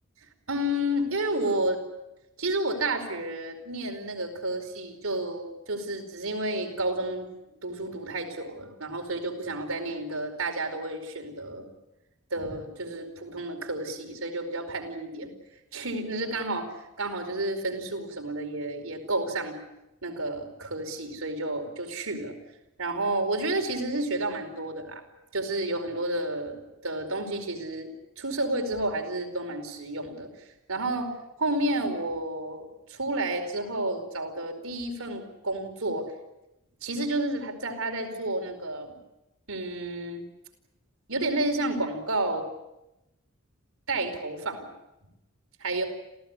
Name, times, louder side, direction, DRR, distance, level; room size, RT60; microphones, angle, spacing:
voice 1, 0.5-1.8 2.4-7.3 7.6-11.7 12.3-15.3 15.7-19.5 20.0-22.3 22.8-25.0 25.3-27.9 28.2-31.1 31.4-36.1 36.8-38.9 39.5-40.2 41.1-42.4 43.9-44.7 45.6-45.8, right 1 dB, 70° right, 4 dB, 4.9 m, -31 dB
28.0 x 16.0 x 9.8 m, 0.92 s
head